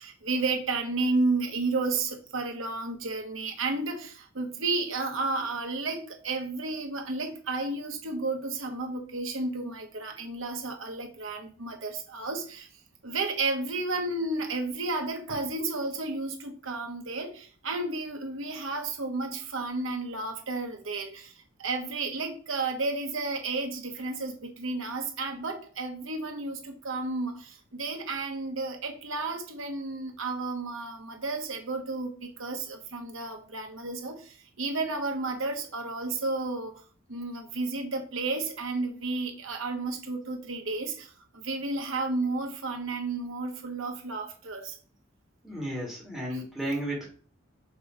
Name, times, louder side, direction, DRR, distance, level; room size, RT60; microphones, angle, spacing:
voice 1, 0.0-12.7 13.0-36.7 37.1-44.8 46.3-46.4, right 3 dB, 75° right, 4 dB, 1.3 m, -32 dB
voice 2, 45.4-47.1, right 1 dB, ahead, -4 dB, 1.7 m, -33 dB
6.1 x 3.2 x 5.0 m, 0.41 s
head